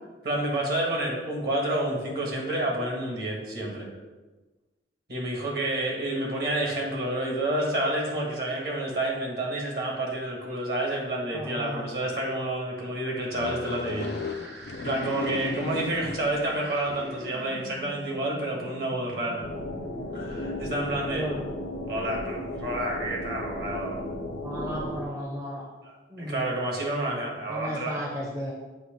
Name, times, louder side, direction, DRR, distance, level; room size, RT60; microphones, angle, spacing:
voice 1, 0.2-3.9 5.1-19.4 20.1-21.3 21.8-24.0 25.8-28.0, right 1 dB, 55° right, -1 dB, 1.5 m, -29 dB
voice 2, 11.3-11.9 20.9-21.4 24.4-25.7 26.1-26.5 27.5-28.5, equal, 15° right, -3 dB, 0.6 m, -34 dB
sound 1, 13.3-17.4, left 4 dB, 55° left, 0.4 m, -36 dB
sound 2, 14.0-21.9, right 2 dB, 75° right, 0.8 m, -46 dB
sound 3, 19.4-25.0, left 1 dB, 80° left, 0.9 m, -35 dB
7.9 x 2.9 x 5.0 m, 1.2 s
head